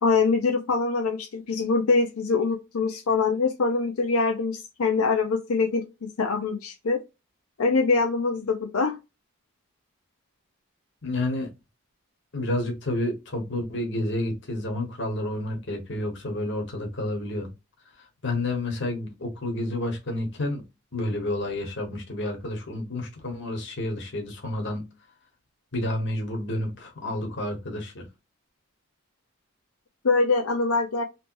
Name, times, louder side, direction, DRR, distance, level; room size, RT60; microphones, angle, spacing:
voice 1, 0.0-5.9 6.2-7.0 7.6-9.0 30.0-31.0, left 4 dB, 90° left, 0.5 m, -24 dB
voice 2, 11.0-11.5 12.3-17.5 18.2-20.6 20.9-24.9 25.7-28.0, left 1 dB, 55° left, 1.3 m, -30 dB
3.2 x 3.0 x 2.6 m
head